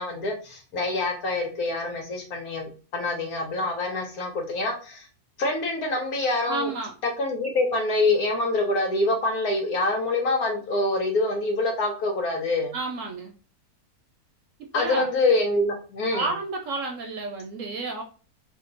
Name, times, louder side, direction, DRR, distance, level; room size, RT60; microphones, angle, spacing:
voice 1, 0.0-5.1 5.4-6.7 7.0-12.7 14.7-16.3, left 2 dB, 80° left, 1 dB, 1.3 m, -25 dB
voice 2, 6.5-6.9 12.7-13.3 14.7-15.1 16.1-18.0, right 3 dB, 65° right, 3 dB, 0.9 m, -31 dB
3.7 x 2.4 x 3.8 m, 0.37 s
omnidirectional pair, 1.6 m